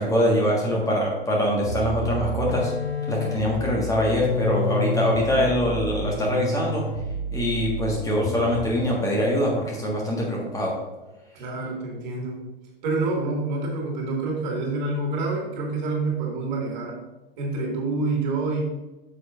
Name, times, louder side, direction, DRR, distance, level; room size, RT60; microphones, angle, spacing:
voice 1, 0.0-2.7 3.1-6.8 7.3-10.7, left 1 dB, 10° left, -3 dB, 1.6 m, -23 dB
sound 1, 1.6-8.8, left 1 dB, 85° left, 0.9 m, -30 dB
voice 2, 11.3-12.4 12.8-17.0 17.4-18.6, right 3 dB, 45° right, -1 dB, 2.3 m, -27 dB
9.0 x 6.9 x 2.6 m, 1.1 s
figure-of-eight pair, 100°, 31 cm